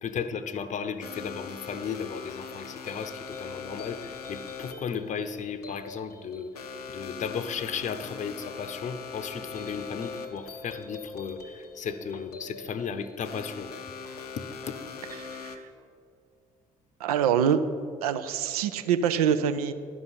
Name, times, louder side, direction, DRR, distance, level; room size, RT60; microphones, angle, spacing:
voice 1, 0.0-13.9 14.4-14.8, left 6 dB, 40° left, 10 dB, 0.7 m, -35 dB
sound 1, 1.0-15.6, left 5 dB, 80° left, 0.6 m, -41 dB
voice 2, 15.2-15.6 17.0-17.6 18.0-19.7, right 8 dB, 75° right, 11 dB, 0.5 m, -25 dB
11.0 x 5.5 x 7.8 m, 2.2 s
figure-of-eight pair, 45°, 19 cm